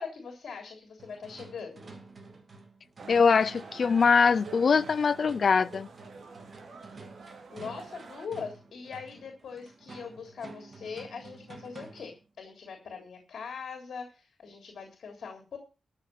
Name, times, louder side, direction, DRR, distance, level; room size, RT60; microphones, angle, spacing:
voice 1, 0.0-1.9 7.5-15.6, left 5 dB, 60° left, 3.4 m, -41 dB
sound 1, 1.0-12.2, right 3 dB, 30° right, 2.3 m, -50 dB
sound 2, 3.0-8.3, right 4 dB, 50° right, 2.5 m, -47 dB
voice 2, 3.1-5.9, left 5 dB, 45° left, 0.6 m, -23 dB
13.5 x 7.0 x 7.5 m
wide cardioid pair, 165°, 0 cm